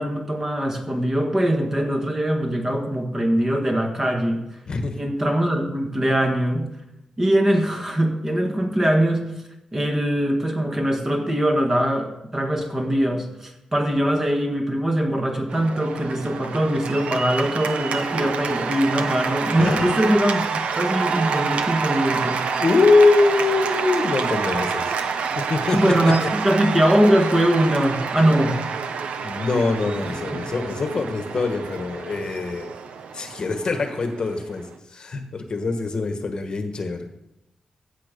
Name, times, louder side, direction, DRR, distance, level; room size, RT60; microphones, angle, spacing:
voice 1, 0.0-4.4 5.0-6.7 7.2-9.3 9.7-22.5 25.7-28.6 30.0-30.4, right 1 dB, 20° right, 3 dB, 1.8 m, -22 dB
voice 2, 4.7-5.0 19.6-20.0 22.6-25.0 25.3-26.1 29.2-32.7 33.1-37.1, left 3 dB, 45° left, 6 dB, 1.3 m, -23 dB
Cheering / Applause, 15.5-34.8, right 5 dB, 90° right, 0.9 m, -28 dB
15.5 x 7.5 x 5.3 m, 0.88 s
wide cardioid pair, 145°, 2 cm